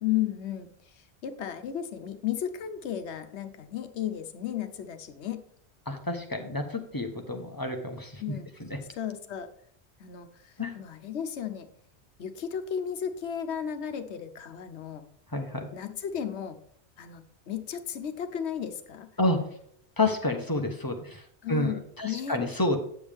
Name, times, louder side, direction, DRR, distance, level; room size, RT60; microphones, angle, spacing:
voice 1, 0.0-5.4 8.2-8.5 8.9-9.5 10.0-11.7 12.2-15.0 15.7-16.6 17.0-19.1 21.4-22.4, left 9 dB, 80° left, 8 dB, 1.0 m, -34 dB
voice 2, 5.9-8.2 10.6-10.7 15.3-15.7 19.2-19.5 20.0-22.8, left 2 dB, 20° left, 3 dB, 0.9 m, -29 dB
8.7 x 7.0 x 3.5 m, 0.65 s
omnidirectional pair, 1.1 m